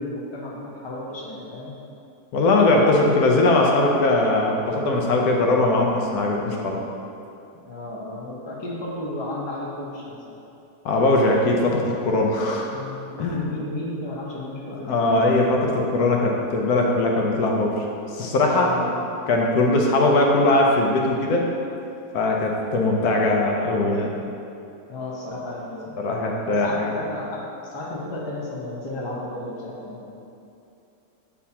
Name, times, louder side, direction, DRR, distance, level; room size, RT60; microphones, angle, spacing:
voice 1, 0.0-1.7 7.7-10.3 12.7-15.5 18.4-19.0 24.9-30.1, left 1 dB, 25° left, -4 dB, 0.5 m, -33 dB
voice 2, 2.3-6.8 10.8-12.7 13.2-13.4 14.8-18.7 19.3-21.4 22.1-24.1 26.0-27.0, left 2 dB, 70° left, 0 dB, 1.1 m, -20 dB
8.3 x 4.2 x 2.8 m, 2.7 s
omnidirectional pair, 1.7 m